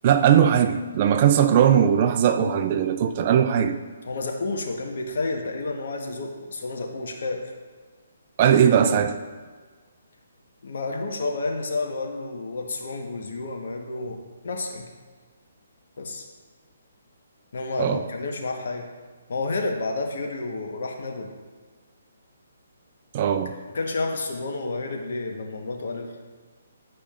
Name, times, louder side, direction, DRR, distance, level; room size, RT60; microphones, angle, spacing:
voice 1, 0.0-3.7 8.4-9.1 17.8-18.0 23.1-23.5, right 9 dB, 40° right, 8 dB, 0.5 m, -19 dB
voice 2, 4.0-7.5 10.6-14.9 16.0-16.2 17.5-18.9 19.3-21.3 23.7-26.1, left 3 dB, 65° left, 2 dB, 1.1 m, -30 dB
10.5 x 5.0 x 2.5 m, 1.5 s
hypercardioid pair, 150°, 0 cm